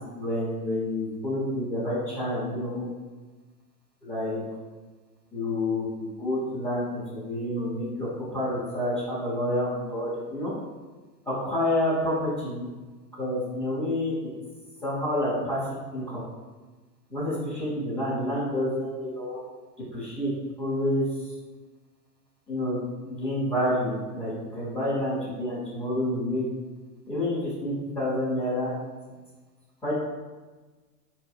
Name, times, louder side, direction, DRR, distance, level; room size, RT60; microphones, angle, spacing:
voice 1, 0.1-2.9 4.0-4.4 5.3-5.9 6.2-10.5 11.3-12.7 13.2-14.1 14.8-15.6 15.9-16.2 17.1-19.4 19.9-20.3 20.6-21.1 22.5-26.4 27.1-28.7 29.8-29.9, left 1 dB, 5° left, -13 dB, 0.3 m, -28 dB
4.0 x 2.8 x 2.3 m, 1.3 s
hypercardioid pair, 120°, 48 cm